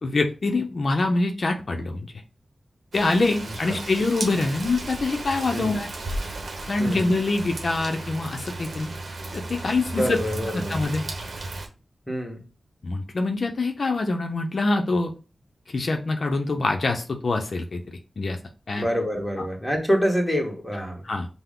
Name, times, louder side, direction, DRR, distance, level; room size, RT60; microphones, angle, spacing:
voice 1, 0.0-2.1 2.9-5.9 6.7-8.9 9.3-10.2 10.5-11.0 12.8-15.1 15.7-18.4 18.7-18.9 19.4-19.5 21.0-21.3, left 3 dB, 60° left, 4 dB, 0.6 m, -25 dB
Rain, 2.9-11.7, right 2 dB, 65° right, 0.8 m, -35 dB
voice 2, 10.0-10.7 12.1-12.4 18.8-21.0, equal, 5° left, 1 dB, 1.3 m, -26 dB
5.7 x 2.1 x 3.6 m, 0.33 s
wide cardioid pair, 75°, 0 cm